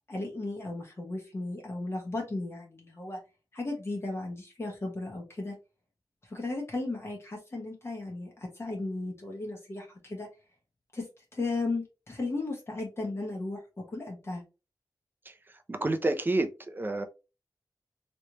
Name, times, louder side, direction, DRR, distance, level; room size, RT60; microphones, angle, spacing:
voice 1, 0.1-3.2 3.5-5.5 6.2-10.3 10.9-14.4, left 2 dB, 35° left, 1.2 m, -35 dB
voice 2, 15.7-17.1, right 2 dB, 30° right, 0.6 m, -29 dB
3.3 x 3.1 x 2.8 m
wide cardioid pair, 115°, 7 cm